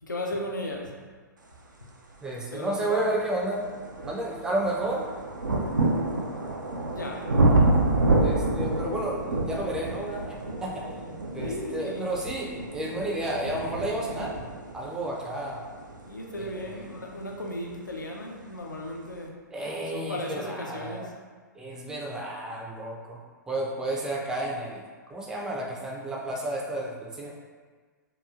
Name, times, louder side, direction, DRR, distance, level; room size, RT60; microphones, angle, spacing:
voice 1, 0.0-1.0 1.8-1.9 2.5-3.1 6.9-7.2 11.4-12.1 16.1-19.3 19.9-21.1, left 1 dB, 85° left, 0 dB, 0.4 m, -35 dB
voice 2, 2.2-3.6 4.0-5.1 8.1-14.3 14.7-15.6 16.4-16.8 19.5-21.1 21.6-24.8 25.1-27.3, right 1 dB, 5° right, -3 dB, 0.3 m, -32 dB
sound 1, 2.5-2.6 3.2-17.9 18.8-18.9, right 2 dB, 85° right, 0.4 m, -28 dB
2.8 x 2.3 x 2.4 m, 1.5 s
figure-of-eight pair, 105°, 10 cm